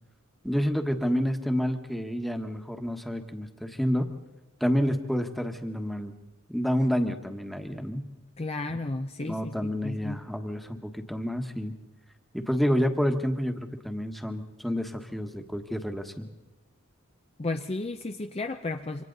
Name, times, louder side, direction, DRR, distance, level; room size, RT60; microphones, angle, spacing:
voice 1, 0.4-4.1 4.6-6.1 6.5-8.1 9.2-11.7 12.3-16.3, equal, ahead, 5 dB, 1.4 m, -29 dB
voice 2, 8.4-10.2 17.4-19.0, left 2 dB, 30° left, 6 dB, 0.6 m, -33 dB
27.0 x 25.5 x 4.0 m, 1.1 s
head